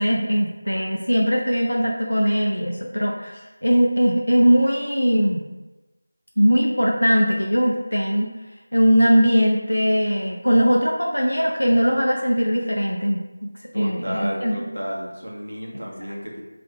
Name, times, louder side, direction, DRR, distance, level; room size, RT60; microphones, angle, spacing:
voice 1, 0.0-5.4 6.4-8.3 8.7-14.7, equal, 85° left, -1 dB, 0.6 m, -20 dB
voice 2, 13.7-16.4, equal, 75° right, -2 dB, 1.3 m, -32 dB
5.3 x 3.3 x 2.4 m, 1.1 s
figure-of-eight pair, 170°, 0 cm